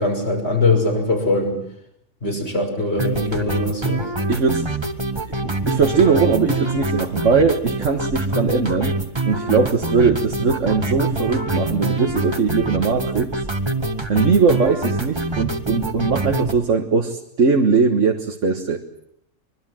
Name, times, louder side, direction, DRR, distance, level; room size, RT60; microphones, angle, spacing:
voice 1, 0.0-1.5 2.2-4.1, left 2 dB, 55° left, 3 dB, 6.3 m, -21 dB
sound 1, 3.0-16.5, right 2 dB, 20° right, 1.8 m, -25 dB
voice 2, 4.3-4.7 5.4-9.0 9.3-13.4 14.1-18.8, right 5 dB, 70° right, 4 dB, 1.8 m, -20 dB
25.0 x 23.0 x 7.7 m, 0.70 s
omnidirectional pair, 1.3 m